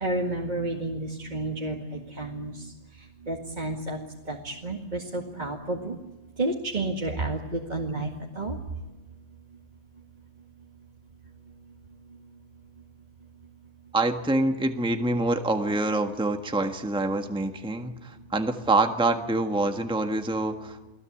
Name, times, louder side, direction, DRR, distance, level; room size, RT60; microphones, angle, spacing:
voice 1, 0.0-2.7 3.3-6.0 6.4-8.1 8.4-8.6, right 2 dB, 30° right, 0 dB, 2.1 m, -31 dB
voice 2, 13.9-20.9, right 2 dB, 5° right, 6 dB, 1.4 m, -26 dB
29.5 x 19.5 x 8.6 m, 1.2 s
omnidirectional pair, 1.6 m